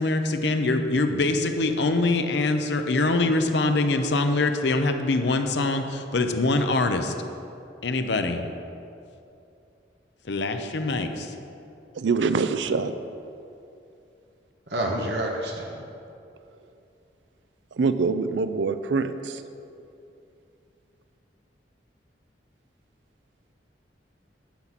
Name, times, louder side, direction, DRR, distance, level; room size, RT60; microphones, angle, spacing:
voice 1, 0.0-7.1 7.8-8.4 10.3-11.3, left 2 dB, 75° left, 6 dB, 0.7 m, -24 dB
voice 2, 11.9-12.9 17.7-19.4, right 4 dB, 85° right, 11 dB, 0.5 m, -24 dB
voice 3, 14.7-15.8, right 1 dB, 65° right, 0 dB, 1.3 m, -28 dB
10.0 x 4.1 x 7.3 m, 2.6 s
head